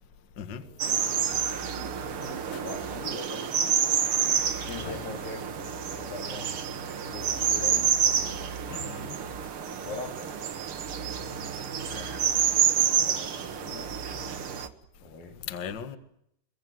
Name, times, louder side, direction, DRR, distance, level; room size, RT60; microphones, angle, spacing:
voice 1, 0.6-1.4 2.1-3.5 4.3-6.6 7.1-8.6 9.6-10.5 11.9-12.3 12.9-13.9 15.0-15.4, left 4 dB, 60° left, 5.0 m, -42 dB
sound 1, 0.8-14.7, right 8 dB, 65° right, 1.3 m, -28 dB
voice 2, 8.7-9.1 15.5-16.0, left 8 dB, 80° left, 0.9 m, -38 dB
26.5 x 23.0 x 7.9 m
omnidirectional pair, 4.8 m